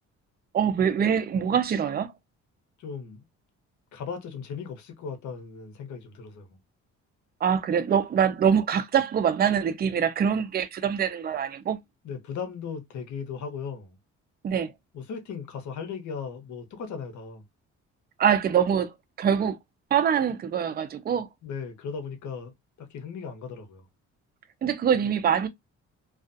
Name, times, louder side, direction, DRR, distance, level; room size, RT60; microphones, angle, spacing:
voice 1, 0.5-2.1 7.4-11.8 14.4-14.7 18.2-19.6 19.9-21.3 24.6-25.5, right 8 dB, 30° right, 0.4 m, -24 dB
voice 2, 2.8-3.3 3.9-6.6 12.0-14.0 14.9-17.4 21.4-22.5 22.8-23.8, left 6 dB, 70° left, 0.9 m, -37 dB
2.4 x 2.3 x 2.5 m
cardioid pair, 90°, 30 cm